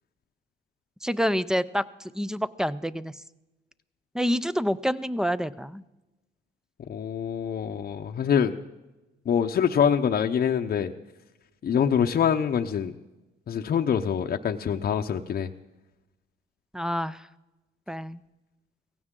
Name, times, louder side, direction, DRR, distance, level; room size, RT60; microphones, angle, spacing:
voice 1, 1.0-3.1 4.1-5.8 16.7-17.3 17.9-18.2, equal, 5° right, 16 dB, 0.5 m, -27 dB
voice 2, 6.9-8.5 9.3-10.9 11.6-12.9 13.5-15.5, left 8 dB, 50° left, 4 dB, 0.7 m, -25 dB
17.0 x 16.0 x 3.7 m, 1.0 s
cardioid pair, 90°, 20 cm